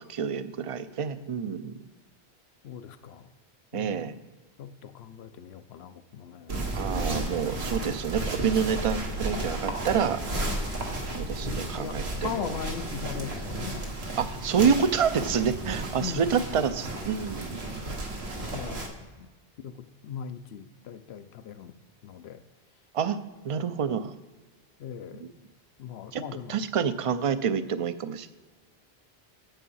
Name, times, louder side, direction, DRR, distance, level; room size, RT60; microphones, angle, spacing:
voice 1, 0.1-1.8 3.7-4.2 6.7-10.2 11.2-12.5 14.2-17.9 22.9-23.2 23.4-24.1 25.2-25.3 26.1-26.2 26.5-28.3, right 7 dB, 45° right, 12 dB, 0.4 m, -28 dB
voice 2, 2.6-3.3 3.7-4.1 4.6-6.6 11.4-13.9 14.2-14.3 16.0-16.3 18.4-19.3 19.6-19.8 20.0-21.7 22.0-22.4 24.8-25.2 25.8-26.6, left 8 dB, 80° left, 11 dB, 0.8 m, -39 dB
sound 1, 6.5-18.9, right 1 dB, 90° right, 1.7 m, -33 dB
9.1 x 6.9 x 5.5 m, 1.3 s
omnidirectional pair, 1.1 m